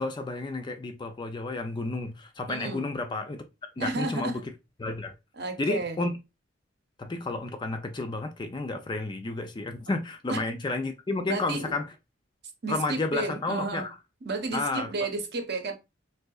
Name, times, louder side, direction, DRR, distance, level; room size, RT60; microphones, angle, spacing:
voice 1, 0.0-3.4 3.8-4.4 4.8-5.1 5.6-6.2 7.0-11.9 12.7-13.9 14.5-14.9, left 2 dB, 25° left, 0.4 m, -31 dB
voice 2, 2.5-2.9 3.8-4.4 5.3-6.0 10.3-10.4 11.3-11.7 12.6-13.9 14.2-15.7, right 3 dB, 55° right, 0.8 m, -32 dB
3.7 x 2.7 x 2.3 m
head